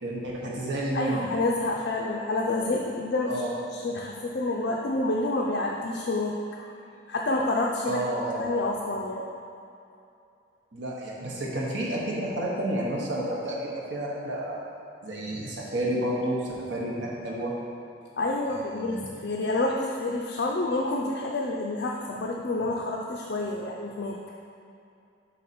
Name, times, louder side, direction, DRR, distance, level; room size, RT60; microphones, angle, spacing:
voice 1, 0.0-1.3 3.3-3.5 7.8-8.4 10.7-14.6 15.0-17.5 18.5-19.1, right 1 dB, 75° right, -4 dB, 1.1 m, -30 dB
voice 2, 0.9-3.4 3.7-6.7 7.1-8.0 8.4-9.3 18.2-24.2, left 2 dB, 60° left, -1 dB, 0.4 m, -28 dB
5.6 x 5.0 x 4.2 m, 2.6 s
head